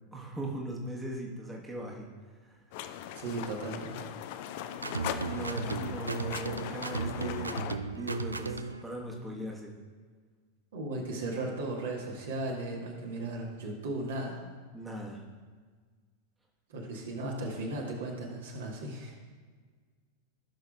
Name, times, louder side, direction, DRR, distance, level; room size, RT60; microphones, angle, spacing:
voice 1, 0.1-2.1 2.4-2.8 5.3-9.7 14.7-15.2, right 1 dB, 10° right, -2 dB, 1.3 m, -39 dB
sound 1, 2.7-7.8, left 10 dB, 50° left, 0.4 m, -39 dB
voice 2, 3.1-4.0 10.7-14.4 16.7-19.1, right 2 dB, 60° right, -1 dB, 1.6 m, -36 dB
sound 2, 4.8-8.8, right 3 dB, 80° right, 0.4 m, -35 dB
15.5 x 6.2 x 2.4 m, 1.5 s
figure-of-eight pair, 90°, 0 cm